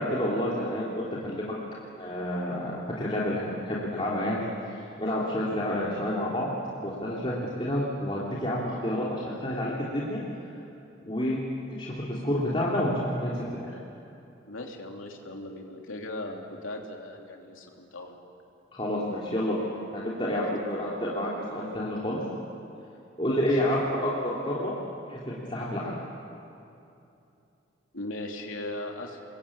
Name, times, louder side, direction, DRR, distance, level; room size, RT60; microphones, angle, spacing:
voice 1, 0.0-1.5 2.0-6.5 6.8-10.2 11.0-11.4 11.7-13.8 18.7-19.7 19.9-22.2 23.2-24.7 25.1-26.0, left 1 dB, 25° left, -6 dB, 3.1 m, -29 dB
voice 2, 14.5-18.2 20.3-20.6 23.2-23.6 27.9-29.2, left 1 dB, 85° left, 1 dB, 3.2 m, -38 dB
29.5 x 22.0 x 8.7 m, 2.7 s
head